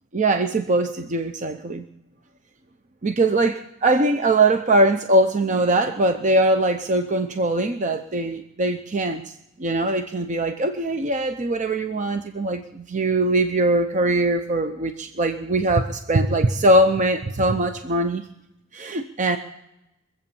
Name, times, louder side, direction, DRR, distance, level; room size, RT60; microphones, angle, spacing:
voice 1, 0.1-1.8 3.0-18.3 18.7-19.4, right 2 dB, 35° right, 7 dB, 0.7 m, -21 dB
23.5 x 8.1 x 7.0 m, 0.88 s
head